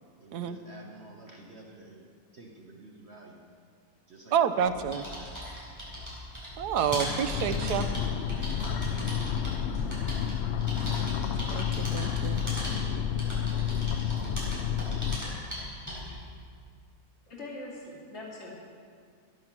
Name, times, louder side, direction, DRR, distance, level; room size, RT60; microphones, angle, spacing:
voice 1, 0.2-2.1 2.3-3.5 4.1-5.5, right 2 dB, 45° right, 0 dB, 1.3 m, -50 dB
voice 2, 4.3-5.0 6.6-7.9 11.5-12.4, right 8 dB, 85° right, 10 dB, 1.3 m, -28 dB
sound 1, 4.6-16.2, equal, 10° right, 4.5 m, -38 dB
sound 2, 7.3-15.2, left 8 dB, 70° left, 0.6 m, -30 dB
voice 3, 17.3-18.5, left 2 dB, 45° left, -5 dB, 3.0 m, -42 dB
14.5 x 10.5 x 6.0 m, 2.2 s
omnidirectional pair, 1.7 m